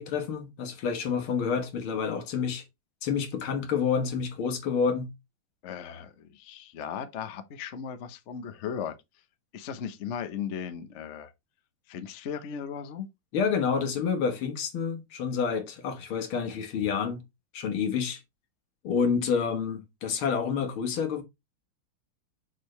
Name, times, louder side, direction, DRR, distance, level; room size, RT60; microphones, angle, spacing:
voice 1, 0.0-2.6 3.0-5.1 13.3-17.2 17.5-18.2 18.8-21.2, left 6 dB, 85° left, 2.1 m, -28 dB
voice 2, 5.6-8.9 9.5-11.3 11.9-13.1, left 8 dB, 50° left, 0.8 m, -37 dB
6.5 x 6.3 x 3.2 m
omnidirectional pair, 2.3 m